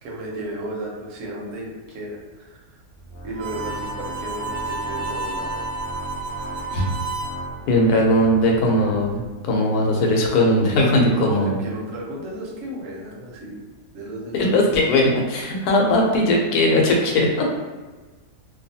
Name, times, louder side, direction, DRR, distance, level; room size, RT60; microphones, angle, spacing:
voice 1, 0.0-2.6 3.2-5.5 11.1-13.7 13.9-14.7, right 1 dB, 65° right, -2 dB, 1.0 m, -34 dB
Organ, 2.9-9.5, right 1 dB, 65° left, 0.6 m, -38 dB
Harmonica, 3.3-7.4, right 2 dB, 85° right, 1.1 m, -30 dB
voice 2, 7.7-11.5 14.3-17.5, left 1 dB, 85° left, -1 dB, 1.1 m, -19 dB
2.6 x 2.3 x 2.7 m, 1.2 s
omnidirectional pair, 1.6 m